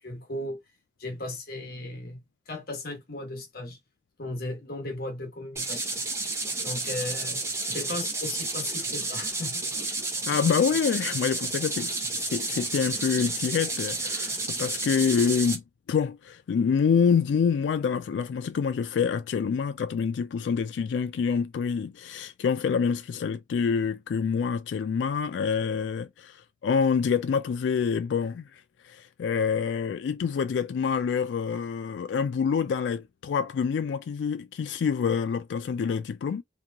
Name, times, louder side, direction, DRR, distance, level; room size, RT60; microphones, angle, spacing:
voice 1, 0.0-0.6 1.0-3.8 4.2-6.0 6.6-9.7, left 2 dB, 55° left, 1.2 m, -36 dB
sound 1, 5.6-15.6, right 3 dB, 15° right, 0.8 m, -31 dB
voice 2, 10.3-36.4, left 6 dB, 80° left, 0.3 m, -27 dB
3.0 x 2.6 x 2.3 m
head